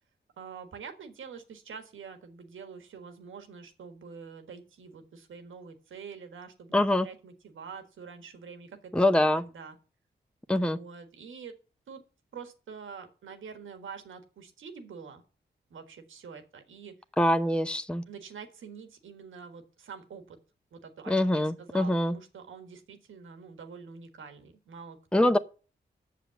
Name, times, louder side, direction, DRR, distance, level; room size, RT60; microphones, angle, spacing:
voice 1, 0.4-9.8 10.5-11.5 11.9-12.0 12.3-15.2 15.7-16.9 18.1-20.4 20.7-25.4, right 6 dB, 90° right, 1.6 m, -46 dB
voice 2, 6.7-7.1 8.9-9.4 10.5-10.8 17.2-18.0 21.1-22.2 25.1-25.4, left 1 dB, 5° left, 0.8 m, -24 dB
8.4 x 6.9 x 6.9 m
cardioid pair, 45°, 20 cm